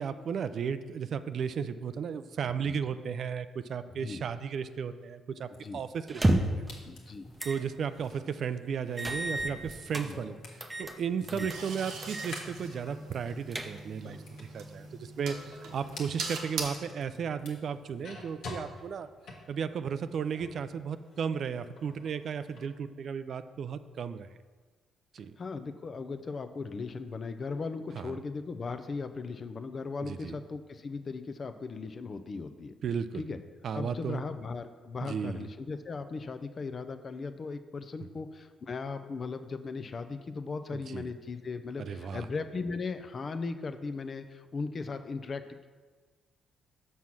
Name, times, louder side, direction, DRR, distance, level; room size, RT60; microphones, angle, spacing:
voice 1, 0.0-6.7 7.4-19.1 19.5-24.3 25.1-25.4 27.9-28.2 30.0-30.4 32.8-33.3 33.6-34.2 35.0-35.5 40.7-41.1 41.8-42.3, right 7 dB, 60° right, 12 dB, 0.4 m, -35 dB
sound 1, 5.5-20.7 21.0-22.7, left 2 dB, 75° left, 1.4 m, -50 dB
sound 2, 6.1-6.7 7.4-7.6 8.0-8.1 9.0-10.1 10.6-11.0 11.3-11.6 12.0-12.3 12.7-12.8 13.2-14.0, right 1 dB, 15° right, 0.7 m, -30 dB
voice 2, 6.8-7.3 10.0-10.2 11.3-11.5 25.4-32.7 33.1-33.4 33.7-45.7, left 4 dB, 40° left, 9 dB, 0.6 m, -38 dB
sound 3, 11.5-16.6, right 4 dB, 80° right, 1.1 m, -41 dB
6.3 x 5.5 x 6.0 m, 1.4 s
cardioid pair, 90°, 0 cm